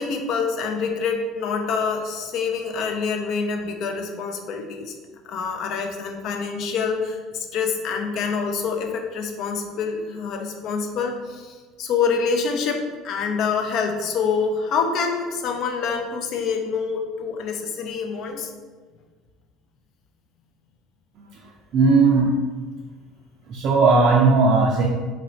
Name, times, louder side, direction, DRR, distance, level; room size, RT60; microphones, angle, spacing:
voice 1, 0.0-4.9 5.2-18.5, left 5 dB, 55° left, 3 dB, 0.4 m, -26 dB
voice 2, 21.3-22.3 23.5-24.9, right 4 dB, 55° right, -2 dB, 0.4 m, -17 dB
3.0 x 2.5 x 3.1 m, 1.4 s
hypercardioid pair, 70°, 0 cm